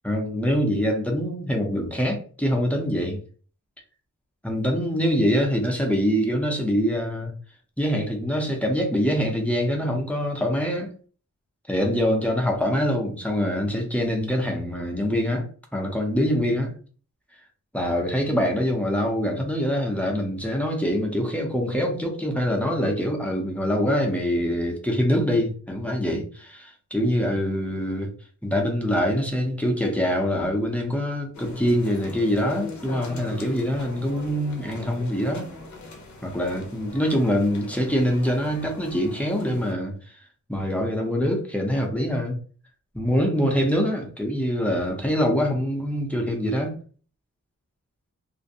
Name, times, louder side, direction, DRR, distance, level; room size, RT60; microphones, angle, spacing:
voice 1, 0.0-3.2 4.4-7.3 7.8-10.9 11.7-15.5 15.7-16.7 17.7-28.1 28.4-35.5 36.2-39.9 40.5-42.4 42.9-46.8, equal, 5° left, 0 dB, 0.6 m, -24 dB
sound 1, 31.3-39.7, left 2 dB, 65° left, 0.6 m, -41 dB
2.5 x 2.1 x 2.7 m, 0.42 s
wide cardioid pair, 115°, 31 cm